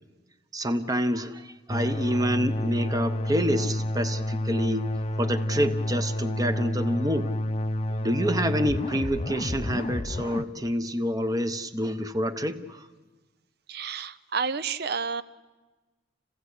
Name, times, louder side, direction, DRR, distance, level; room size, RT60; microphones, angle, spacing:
voice 1, 0.5-4.9 5.2-7.3 8.0-12.9, equal, 20° right, 9 dB, 1.0 m, -27 dB
sound 1, 1.7-10.4, left 1 dB, 30° left, 0.7 m, -29 dB
voice 2, 7.9-8.2 13.7-15.2, right 5 dB, 60° right, 14 dB, 0.7 m, -31 dB
29.0 x 16.5 x 8.3 m, 1.2 s
head